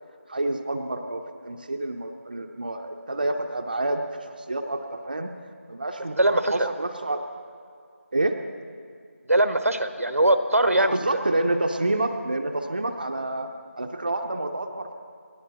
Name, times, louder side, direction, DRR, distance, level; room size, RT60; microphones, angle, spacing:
voice 1, 0.3-5.3 5.7-7.2 8.1-8.4 10.8-13.5 13.8-14.9, right 2 dB, 40° right, 4 dB, 0.7 m, -28 dB
voice 2, 6.2-6.7 9.3-11.0, right 1 dB, 80° right, 9 dB, 1.1 m, -21 dB
29.5 x 11.5 x 2.9 m, 2.3 s
figure-of-eight pair, 175°, 8 cm